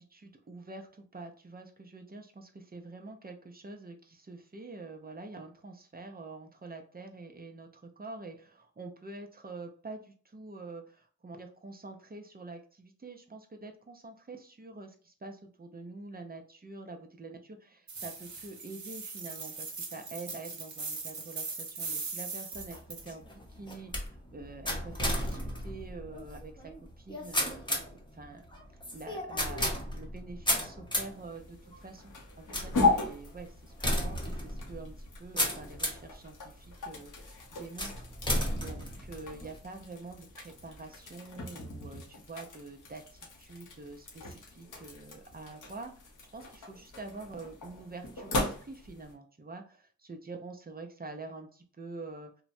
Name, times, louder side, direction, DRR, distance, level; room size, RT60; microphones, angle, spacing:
voice 1, 0.0-28.4 28.9-46.0 46.3-52.4, right 3 dB, 30° right, 4 dB, 0.6 m, -46 dB
sound 1, 17.9-23.0, right 4 dB, 70° right, 0.8 m, -40 dB
sound 2, 22.5-36.1 36.7-37.2 37.8-39.6, left 1 dB, 15° left, 0.9 m, -34 dB
sound 3, 31.1-49.1, left 3 dB, 85° left, 0.8 m, -37 dB
2.9 x 2.1 x 2.6 m, 0.42 s
cardioid pair, 45°, 30 cm